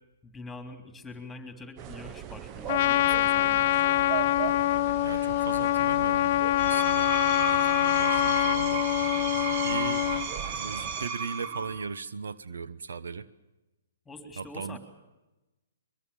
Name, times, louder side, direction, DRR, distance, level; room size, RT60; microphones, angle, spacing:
voice 1, 0.2-3.6 14.0-14.8, left 2 dB, 5° left, 7 dB, 3.4 m, -44 dB
sound 1, 1.8-11.1, right 12 dB, 30° right, 0.8 m, -40 dB
Trumpet, 2.7-10.3, left 14 dB, 50° left, 0.8 m, -25 dB
voice 2, 5.0-8.8 9.6-10.1 10.5-13.3 14.4-14.8, right 5 dB, 80° right, 15 dB, 1.0 m, -38 dB
Screech, 6.4-11.9, right 6 dB, 50° right, 2.3 m, -34 dB
22.5 x 22.5 x 7.2 m, 1.0 s
hypercardioid pair, 130°, 0 cm